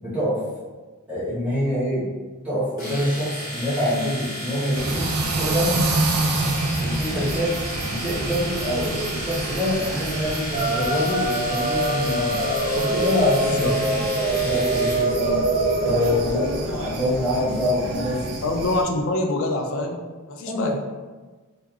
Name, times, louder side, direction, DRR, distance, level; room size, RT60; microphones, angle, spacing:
voice 1, 0.0-0.4 1.1-2.1 2.4-5.8 6.8-7.6 7.8-12.4 12.7-15.4 15.8-18.4 20.5-20.7, left 1 dB, 5° right, -11 dB, 1.0 m, -25 dB
Domestic sounds home sounds, 2.8-15.1, equal, 35° left, 1.2 m, -33 dB
sound 1, 4.7-18.8, right 2 dB, 75° right, 0.4 m, -28 dB
sound 2, 10.5-16.1, right 1 dB, 25° right, 0.6 m, -24 dB
voice 2, 18.4-20.0 20.3-20.7, left 2 dB, 60° left, 2 dB, 0.4 m, -24 dB
3.1 x 2.2 x 2.3 m, 1.3 s
head